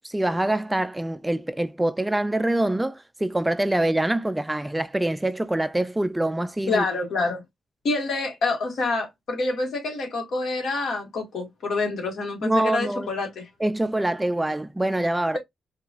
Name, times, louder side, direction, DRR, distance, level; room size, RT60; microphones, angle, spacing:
voice 1, 0.0-6.8 12.4-13.1 13.6-15.4, right 1 dB, 10° right, 0.4 m, -25 dB
voice 2, 6.7-7.4 7.8-13.5, left 3 dB, 70° left, 1.6 m, -27 dB
4.6 x 2.4 x 2.5 m
supercardioid pair, 55°, 0 cm